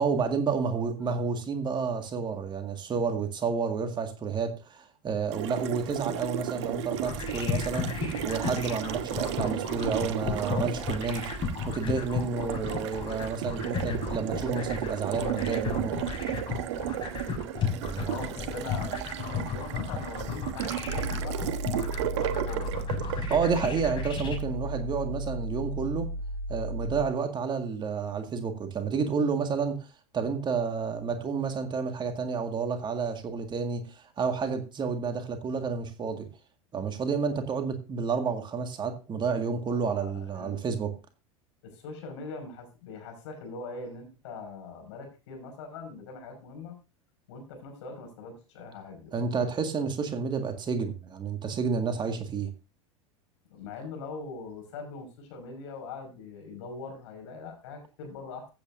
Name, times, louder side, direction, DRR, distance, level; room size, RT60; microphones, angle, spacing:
voice 1, 0.0-15.9 17.8-18.1 23.1-26.1 26.5-29.9 30.1-36.3 36.7-40.9 49.1-52.5, right 5 dB, 25° right, 2.0 m, -30 dB
voice 2, 0.7-1.1 18.0-21.4 22.1-22.8 39.7-40.6 41.6-46.8 47.3-49.1 49.4-49.5 53.5-58.5, left 3 dB, 60° left, 5.6 m, -42 dB
Water tap faucet, 5.3-24.5, right 11 dB, 60° right, 1.2 m, -34 dB
sound 1, 6.9-24.4, left 6 dB, 30° left, 5.4 m, -34 dB
sound 2, 20.9-27.1, equal, 85° right, 1.2 m, -35 dB
15.5 x 8.7 x 2.6 m
figure-of-eight pair, 80°, 17 cm